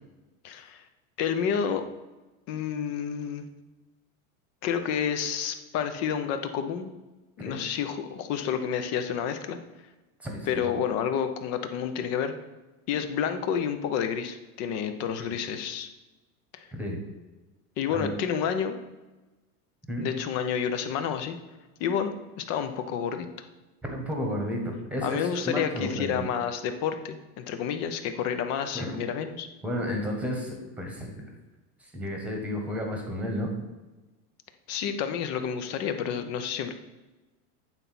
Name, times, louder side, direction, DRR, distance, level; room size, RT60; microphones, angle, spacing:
voice 1, 0.4-0.8 1.2-1.8 2.5-3.5 4.6-6.9 7.4-9.6 10.5-12.3 12.9-15.9 16.5-16.7 17.8-18.8 20.0-21.4 21.8-23.3 25.0-29.5 34.7-36.7, left 8 dB, 35° left, 8 dB, 0.7 m, -29 dB
voice 2, 10.2-10.8 15.3-15.4 16.7-17.0 17.9-18.1 19.9-20.1 23.8-26.3 28.7-28.9 29.6-31.2 31.8-33.5, equal, 5° right, 2 dB, 1.3 m, -32 dB
9.0 x 4.1 x 5.8 m, 1.1 s
supercardioid pair, 160°, 44 cm